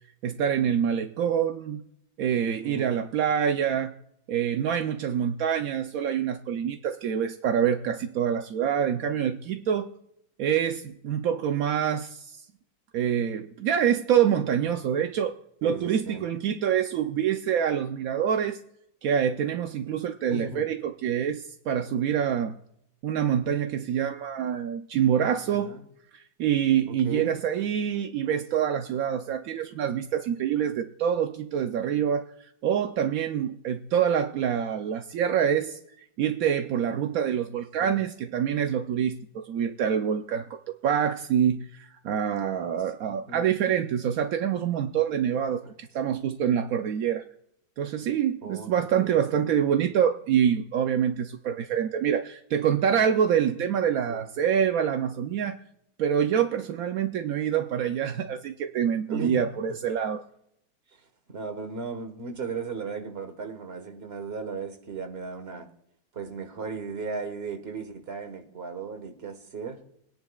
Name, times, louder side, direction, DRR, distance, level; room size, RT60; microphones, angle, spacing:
voice 1, 0.2-1.8 2.2-3.9 4.3-9.9 10.4-12.4 12.9-15.3 15.6-18.6 19.0-22.5 23.0-25.7 26.1-35.8 36.2-47.2 47.8-55.6 56.0-60.2, right 8 dB, 70° right, 0.8 m, -26 dB
voice 2, 2.4-3.0 15.6-16.3 20.3-20.6 25.5-25.8 26.9-27.3 37.8-38.0 42.5-42.7 43.1-43.5 48.4-49.4 54.1-54.2 59.1-59.4 60.9-61.0 61.3-65.7 66.1-69.8, right 4 dB, 35° right, 1.4 m, -36 dB
21.5 x 10.5 x 2.3 m
omnidirectional pair, 2.1 m